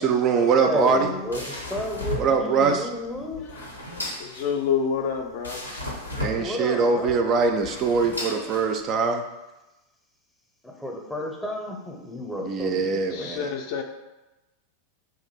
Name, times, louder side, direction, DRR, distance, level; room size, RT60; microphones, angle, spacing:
voice 1, 0.0-1.1 2.2-2.9 6.2-9.2 12.4-13.5, right 5 dB, 35° right, 5 dB, 0.3 m, -22 dB
voice 2, 0.6-3.5 6.0-7.2 8.3-8.6 10.6-13.3, left 1 dB, 5° left, 0 dB, 0.7 m, -32 dB
sound 1, 0.7-9.1, left 2 dB, 85° left, 0.8 m, -36 dB
voice 3, 4.2-5.7 13.1-13.8, left 7 dB, 45° left, 5 dB, 0.4 m, -28 dB
3.5 x 2.6 x 4.4 m, 1.0 s
figure-of-eight pair, 90°, 0 cm